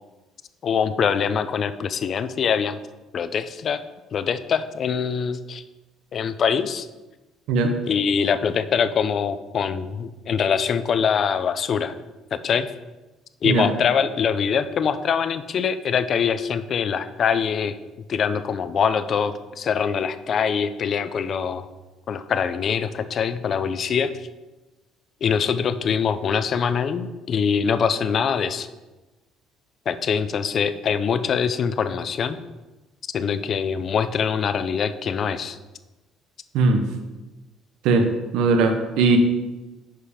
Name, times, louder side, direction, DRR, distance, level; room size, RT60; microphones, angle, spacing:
voice 1, 0.6-2.8 3.1-3.8 4.1-5.6 6.1-6.9 7.9-11.9 12.3-12.7 13.4-17.8 18.1-21.7 22.1-24.1 25.2-28.7 29.9-32.4 33.1-35.6, left 7 dB, 45° left, 12 dB, 0.6 m, -23 dB
voice 2, 37.8-39.2, right 4 dB, 80° right, 5 dB, 1.0 m, -19 dB
10.0 x 5.1 x 5.0 m, 1.1 s
cardioid pair, 125°, 0 cm